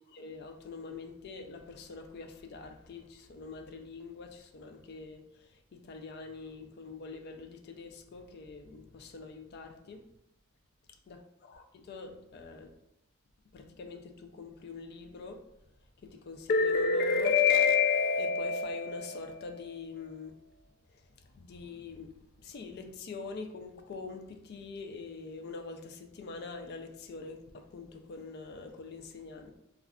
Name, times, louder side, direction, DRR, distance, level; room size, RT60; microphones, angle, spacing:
voice 1, 0.1-10.1 11.1-11.2 11.5-12.7 13.5-15.4 16.0-20.3 21.3-22.1 22.4-29.6, left 5 dB, 50° left, 0.3 m, -35 dB
2.3 x 2.3 x 3.5 m
head